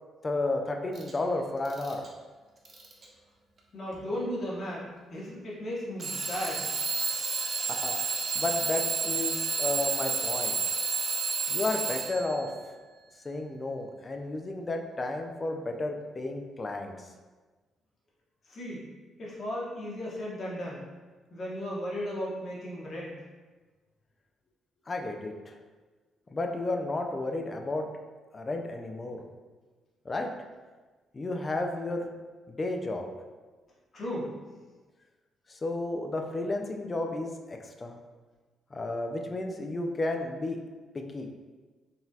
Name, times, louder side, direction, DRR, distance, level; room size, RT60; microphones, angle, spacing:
voice 1, 0.2-2.0 7.7-8.0 8.3-10.6 11.5-12.5 13.2-17.1 24.9-25.6 26.3-27.9 28.3-29.3 30.1-30.3 31.1-32.1 32.5-33.1 35.5-38.0 38.7-40.6 40.9-41.3, left 2 dB, 30° left, 3 dB, 0.4 m, -32 dB
Alarm / Clock, 1.0-1.1 1.6-2.1 2.6-3.0 3.9-4.0 6.0-12.4, right 4 dB, 45° right, 0.5 m, -30 dB
voice 2, 3.7-6.7 18.5-18.9 19.2-20.8 21.3-23.2 33.9-34.3, equal, 50° left, -5 dB, 1.1 m, -35 dB
3.9 x 2.7 x 2.4 m, 1.3 s
cardioid pair, 90°, 0 cm